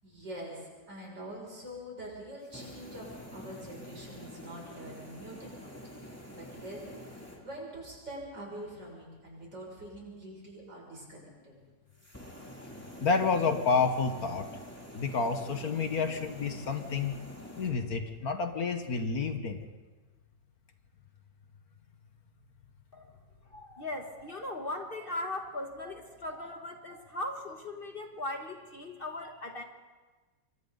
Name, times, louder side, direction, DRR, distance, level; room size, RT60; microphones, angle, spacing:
voice 1, 0.0-5.9 6.3-11.6, right 1 dB, 80° right, -2 dB, 7.2 m, -45 dB
sound 1, 2.4-7.4 11.9-17.7, equal, 10° left, 2.8 m, -47 dB
voice 2, 13.0-14.5 14.9-17.2 17.6-19.7, left 4 dB, 60° left, 6 dB, 1.8 m, -29 dB
voice 3, 23.4-29.6, left 1 dB, 35° left, 4 dB, 1.5 m, -39 dB
26.5 x 24.5 x 4.0 m, 1.3 s
omnidirectional pair, 1.9 m